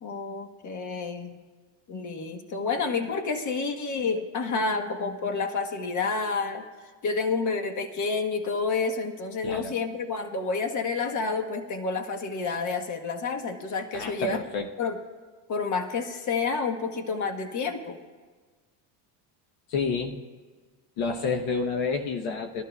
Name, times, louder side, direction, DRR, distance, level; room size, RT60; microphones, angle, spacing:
voice 1, 0.0-1.3 1.9-6.7 7.0-14.4 14.8-15.0 15.5-18.0, left 4 dB, 35° left, 4 dB, 1.2 m, -29 dB
voice 2, 13.9-14.7 19.7-20.2 21.0-22.6, left 4 dB, 65° left, 3 dB, 1.0 m, -29 dB
21.5 x 12.0 x 2.2 m, 1.4 s
cardioid pair, 115°, 48 cm